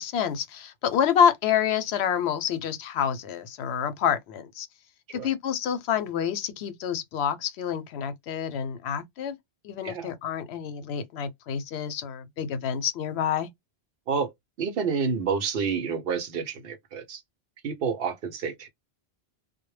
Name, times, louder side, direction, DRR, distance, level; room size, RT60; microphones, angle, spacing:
voice 1, 0.0-4.7 5.1-9.4 9.6-13.5, left 8 dB, 85° left, 0.8 m, -27 dB
voice 2, 14.6-17.2 17.6-18.7, right 6 dB, 65° right, 0.8 m, -29 dB
2.1 x 2.1 x 3.0 m
omnidirectional pair, 1.0 m